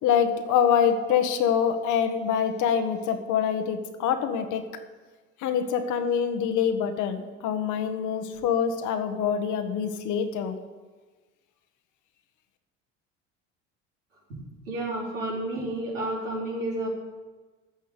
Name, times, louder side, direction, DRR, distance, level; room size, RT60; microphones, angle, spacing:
voice 1, 0.0-4.6 5.4-10.5, left 8 dB, 50° left, 7 dB, 1.5 m, -25 dB
voice 2, 14.7-16.9, right 1 dB, 80° right, -4 dB, 4.2 m, -30 dB
14.5 x 5.5 x 8.2 m, 1.3 s
figure-of-eight pair, 65°, 37 cm